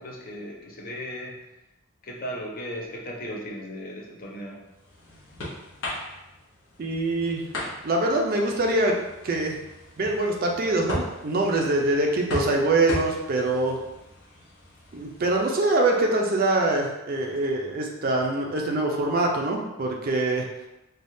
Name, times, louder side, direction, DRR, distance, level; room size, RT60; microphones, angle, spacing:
voice 1, 0.0-1.4 2.0-4.6, equal, 45° left, -1 dB, 0.5 m, -36 dB
sound 1, 4.3-15.4, left 1 dB, 75° left, 1.0 m, -38 dB
voice 2, 6.8-7.4 7.8-9.0 9.2-9.6 10.0-13.8 14.9-20.4, right 2 dB, 45° right, 1 dB, 0.4 m, -24 dB
3.4 x 2.3 x 2.6 m, 0.96 s
head